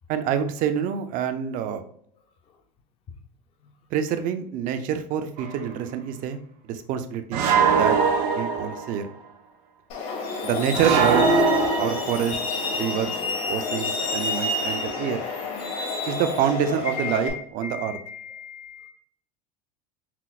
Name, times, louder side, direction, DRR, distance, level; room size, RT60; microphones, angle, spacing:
voice 1, 0.1-1.8 3.9-6.4 6.7-8.0 8.3-9.1 10.4-11.3 11.8-12.4 12.8-13.2 13.4-15.2 16.1-18.0, right 8 dB, 40° right, 9 dB, 0.4 m, -26 dB
sound 1, 5.4-5.6 7.3-9.0 10.7-12.5, right 5 dB, 80° right, 0.7 m, -21 dB
Truck, 9.9-17.3, left 3 dB, 75° left, 1.4 m, -29 dB
voice 2, 16.9-18.9, left 6 dB, 25° left, 5 dB, 0.4 m, -36 dB
5.7 x 2.0 x 2.4 m, 0.64 s
supercardioid pair, 135°, 21 cm